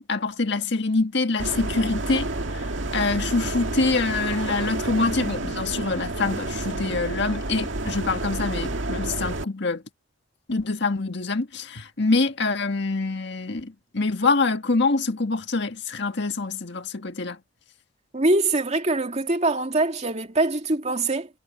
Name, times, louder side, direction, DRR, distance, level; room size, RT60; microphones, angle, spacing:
voice 1, 0.0-9.8 10.5-17.4, left 3 dB, 65° left, 1.7 m, -25 dB
sound 1, 1.4-9.4, right 2 dB, 75° right, 2.1 m, -29 dB
voice 2, 18.1-21.3, right 2 dB, 35° right, 2.5 m, -23 dB
head